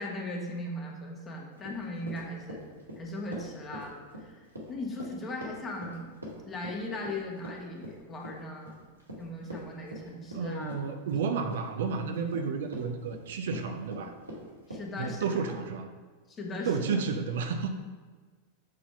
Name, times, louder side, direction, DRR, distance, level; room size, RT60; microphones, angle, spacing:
voice 1, 0.0-2.6 2.9-6.1 6.4-8.8 9.1-10.9 14.7-15.4 16.3-17.0, left 1 dB, 25° left, -1 dB, 1.7 m, -38 dB
Run, 1.6-15.7, equal, 85° right, 2.1 m, -44 dB
voice 2, 10.3-14.1 15.0-15.9 16.7-17.7, right 5 dB, 60° right, 6 dB, 0.7 m, -31 dB
7.7 x 4.3 x 5.6 m, 1.4 s
figure-of-eight pair, 90°, 0 cm